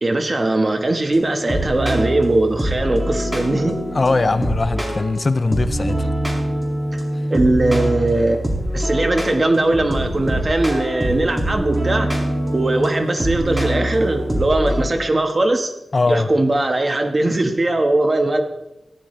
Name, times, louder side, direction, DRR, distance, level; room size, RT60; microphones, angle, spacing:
voice 1, 0.0-3.8 6.9-7.0 7.3-8.4 8.7-12.1 12.5-15.7 16.1-18.4, right 2 dB, 40° right, 5 dB, 1.4 m, -19 dB
sound 1, 1.1-14.9, right 1 dB, 20° right, 2.5 m, -24 dB
voice 2, 3.9-6.1 15.9-16.3, left 3 dB, 45° left, 12 dB, 0.5 m, -20 dB
15.0 x 9.9 x 3.3 m, 0.93 s
wide cardioid pair, 80°, 0 cm